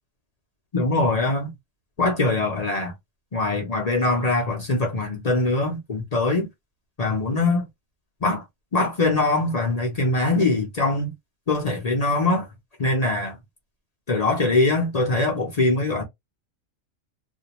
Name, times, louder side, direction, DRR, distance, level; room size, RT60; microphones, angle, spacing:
voice 1, 0.7-1.5 2.0-2.9 3.3-6.5 7.0-7.7 8.2-8.4 8.7-11.1 11.5-12.5 12.8-13.3 14.1-16.0, left 2 dB, 40° left, 0.6 m, -22 dB
2.5 x 2.2 x 2.9 m
omnidirectional pair, 1.4 m